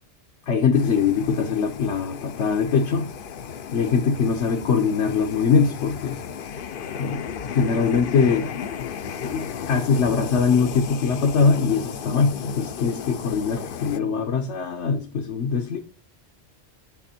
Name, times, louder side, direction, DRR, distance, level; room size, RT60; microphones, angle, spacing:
voice 1, 0.5-3.1 3.7-6.2 6.9-7.2 7.5-8.5 9.2-15.8, left 5 dB, 80° left, 1.2 m, -22 dB
sound 1, 0.7-14.0, left 7 dB, 55° left, 0.7 m, -34 dB
8.4 x 6.9 x 4.3 m
omnidirectional pair, 1.2 m